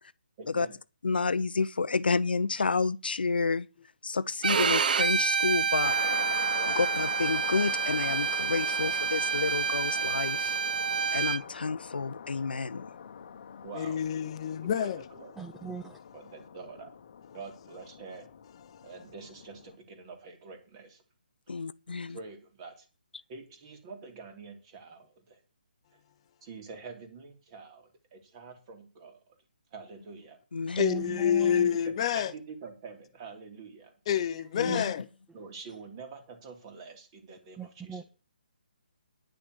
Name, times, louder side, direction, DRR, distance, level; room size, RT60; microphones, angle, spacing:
voice 1, 0.4-0.7 6.6-6.8 13.6-14.0 14.6-15.3 16.1-16.9 17.3-18.3 18.8-21.0 21.5-22.9 23.3-25.4 26.4-29.4 29.7-30.4 31.4-33.9 35.3-38.0, right 4 dB, 30° right, 3.0 m, -46 dB
voice 2, 1.0-3.7 4.0-6.0 6.3-6.5 6.8-10.6 11.1-13.6 21.5-22.2 30.5-30.9 34.5-34.9, left 4 dB, 80° left, 0.7 m, -30 dB
Bowed string instrument, 4.4-11.4, right 6 dB, 65° right, 0.7 m, -28 dB
sound 1, 5.8-19.8, left 7 dB, 50° left, 1.1 m, -43 dB
voice 3, 13.7-15.0 18.7-18.8 30.8-32.3 34.1-35.1, left 9 dB, 35° left, 0.8 m, -28 dB
voice 4, 15.4-16.0 30.8-31.7 34.7-34.8 37.6-38.0, right 5 dB, 5° right, 0.6 m, -38 dB
10.5 x 6.3 x 8.1 m
hypercardioid pair, 150°, 5 cm